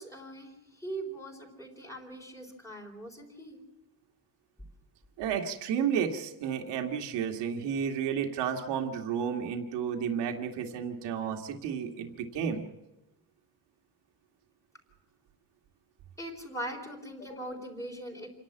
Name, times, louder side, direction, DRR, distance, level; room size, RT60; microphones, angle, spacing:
voice 1, 0.0-3.6 16.2-18.3, right 1 dB, 5° left, 1 dB, 3.8 m, -41 dB
voice 2, 5.2-12.6, right 7 dB, 70° right, 3 dB, 2.2 m, -32 dB
27.5 x 11.5 x 8.6 m, 0.96 s
cardioid pair, 165°, 43 cm